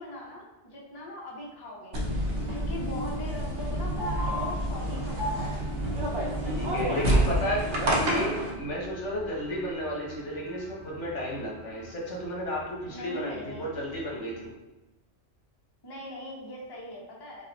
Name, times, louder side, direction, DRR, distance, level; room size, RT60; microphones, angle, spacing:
voice 1, 0.0-2.3 2.5-5.6 6.2-7.5 12.9-13.8 15.8-17.5, left 1 dB, 25° left, -3 dB, 0.7 m, -41 dB
sound 1, 1.9-9.7, right 1 dB, 25° right, 0.6 m, -36 dB
sound 2, 1.9-8.5, right 1 dB, 65° right, 1.1 m, -29 dB
voice 2, 6.5-14.6, left 1 dB, 70° left, -3 dB, 1.4 m, -33 dB
sound 3, 7.6-14.5, right 2 dB, 45° left, 1.7 m, -48 dB
5.0 x 2.4 x 4.0 m, 1.0 s
omnidirectional pair, 1.3 m